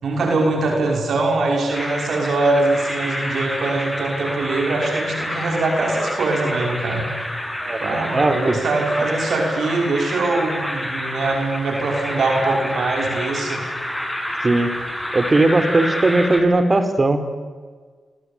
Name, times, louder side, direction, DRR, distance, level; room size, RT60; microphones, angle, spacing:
voice 1, 0.0-7.0 7.8-13.6, right 2 dB, 70° right, 1 dB, 5.9 m, -22 dB
sound 1, 1.7-16.4, equal, 10° left, 7.7 m, -28 dB
voice 2, 8.1-8.6 14.4-14.7 15.1-17.3, right 2 dB, 35° right, 9 dB, 4.2 m, -18 dB
26.0 x 25.5 x 9.0 m, 1.5 s
supercardioid pair, 45°, 0 cm